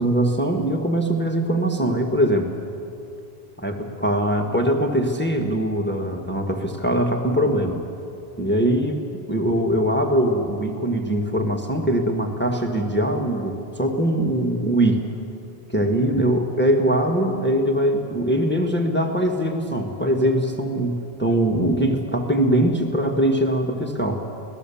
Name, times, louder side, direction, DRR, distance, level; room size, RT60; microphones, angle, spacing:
voice 1, 0.0-2.5 3.6-7.8 8.4-9.0 9.3-15.0 15.7-24.2, right 1 dB, 10° left, 3 dB, 1.4 m, -22 dB
26.0 x 18.5 x 7.0 m, 2.6 s
omnidirectional pair, 1.1 m